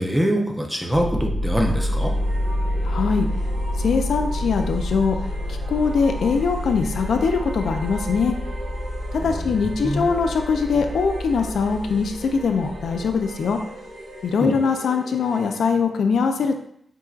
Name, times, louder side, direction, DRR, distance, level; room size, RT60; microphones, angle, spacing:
voice 1, 0.0-2.1 9.2-10.1 14.4-14.6, equal, ahead, 1 dB, 0.6 m, -24 dB
sound 1, 0.9-13.6, left 1 dB, 35° right, 1.2 m, -28 dB
sound 2, 1.5-15.7, right 1 dB, 90° right, 1.3 m, -39 dB
voice 2, 2.8-3.3 3.8-5.2 5.5-8.4 9.1-13.6 14.2-16.6, left 5 dB, 75° left, 5 dB, 0.4 m, -22 dB
7.3 x 2.6 x 2.4 m, 0.70 s
wide cardioid pair, 155°, 0 cm